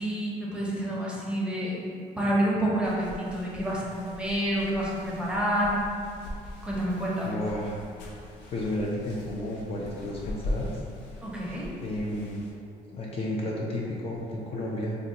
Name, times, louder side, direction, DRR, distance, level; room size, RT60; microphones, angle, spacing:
voice 1, 0.0-1.8 2.2-5.8 6.6-7.4 11.2-11.7, right 1 dB, 5° right, -6 dB, 0.7 m, -28 dB
sound 1, 2.8-12.5, left 1 dB, 85° left, 0.6 m, -41 dB
voice 2, 7.2-7.8 8.2-10.8 11.8-12.5 12.9-15.0, left 1 dB, 35° left, -4 dB, 0.4 m, -32 dB
2.6 x 2.2 x 3.8 m, 2.4 s
cardioid pair, 110°, 17 cm